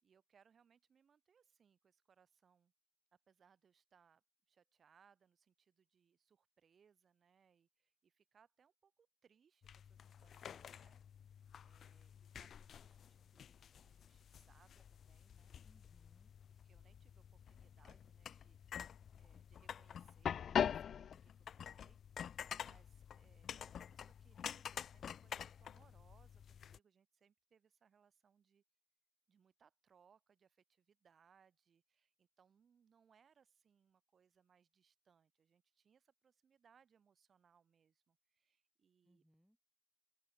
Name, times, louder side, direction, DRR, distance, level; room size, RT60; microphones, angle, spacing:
voice 1, 0.0-2.7 3.3-15.5 16.6-28.6 29.3-39.2, right 7 dB, 65° right, 4.2 m, -73 dB
sound 1, 9.6-26.8, left 8 dB, 80° left, 0.4 m, -46 dB
voice 2, 15.6-16.3 39.0-39.6, equal, ahead, 5.4 m, -72 dB
open air
wide cardioid pair, 115°, 0 cm